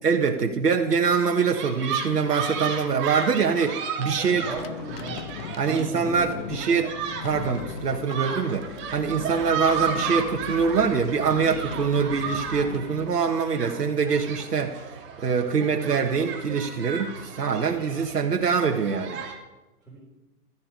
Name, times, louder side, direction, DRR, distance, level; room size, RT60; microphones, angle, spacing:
voice 1, 0.0-4.4 5.6-6.9 7.2-19.2, right 5 dB, 85° right, 3 dB, 1.6 m, -24 dB
sound 1, 1.2-19.3, right 6 dB, 25° right, 2.5 m, -34 dB
voice 2, 4.1-5.2 5.6-6.8 15.8-15.9 19.9-20.0, right 2 dB, ahead, -9 dB, 4.3 m, -37 dB
sound 2, 4.4-13.8, left 9 dB, 40° left, 0.7 m, -39 dB
14.5 x 12.5 x 4.8 m, 1.1 s
hypercardioid pair, 135°, 47 cm